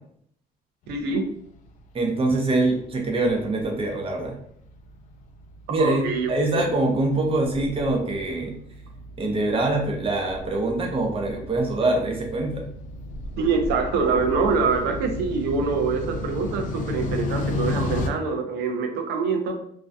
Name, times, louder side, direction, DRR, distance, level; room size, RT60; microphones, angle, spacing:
voice 1, 0.9-1.2 5.8-6.6 13.4-19.5, right 4 dB, 85° right, 4 dB, 0.5 m, -25 dB
sound 1, 1.1-18.1, left 2 dB, 50° left, 0.4 m, -34 dB
voice 2, 1.9-4.3 5.7-8.5 9.2-12.6, right 2 dB, 35° right, 1 dB, 0.6 m, -24 dB
2.6 x 2.2 x 2.2 m, 0.66 s
cardioid pair, 110°, 17 cm